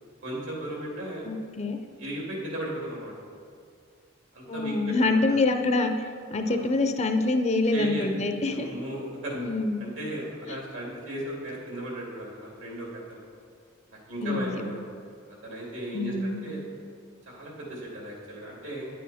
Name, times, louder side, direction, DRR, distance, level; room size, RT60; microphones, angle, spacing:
voice 1, 0.2-1.2 2.0-3.1 4.3-4.7 5.0-5.2 6.5-6.7 7.7-8.1 8.5-9.3 9.8-13.2 14.1-14.8 15.4-16.6 17.3-18.9, right 1 dB, 80° right, -3 dB, 2.7 m, -36 dB
voice 2, 1.3-1.8 4.5-5.9 6.3-8.7 9.3-9.8 10.5-10.6 14.2-14.6 15.9-16.4, left 3 dB, 35° left, 6 dB, 0.6 m, -26 dB
9.8 x 8.5 x 4.2 m, 2.2 s
head